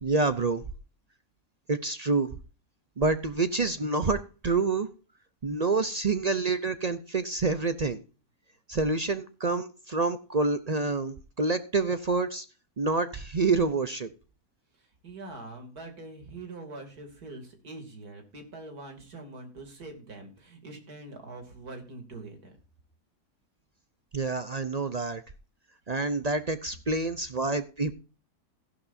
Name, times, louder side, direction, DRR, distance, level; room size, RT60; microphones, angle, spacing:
voice 1, 0.0-0.6 1.7-2.3 3.0-4.9 5.4-8.0 8.7-12.4 12.8-14.1 24.1-25.2 25.9-27.9, right 3 dB, 45° right, 11 dB, 0.5 m, -27 dB
voice 2, 14.8-22.5, right 2 dB, 90° right, 4 dB, 3.2 m, -44 dB
15.5 x 11.5 x 2.7 m, 0.36 s
omnidirectional pair, 1.6 m